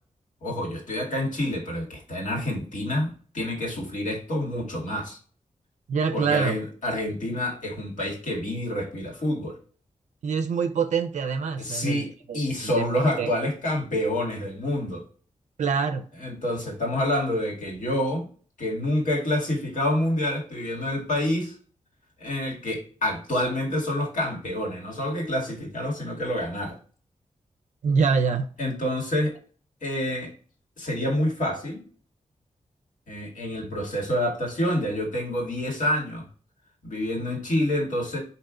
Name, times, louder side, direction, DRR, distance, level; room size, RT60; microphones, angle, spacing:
voice 1, 0.4-5.2 6.1-9.6 11.6-15.0 16.2-18.3 18.6-21.5 22.2-26.8 28.6-29.4 29.8-30.3 30.8-31.8 33.1-36.2 36.8-38.2, left 1 dB, 85° left, 1.7 m, -27 dB
voice 2, 5.9-6.6 10.2-13.3 15.6-16.0 27.8-28.5, right 5 dB, 70° right, 0.4 m, -25 dB
4.7 x 2.8 x 3.6 m
wide cardioid pair, 95°, 13 cm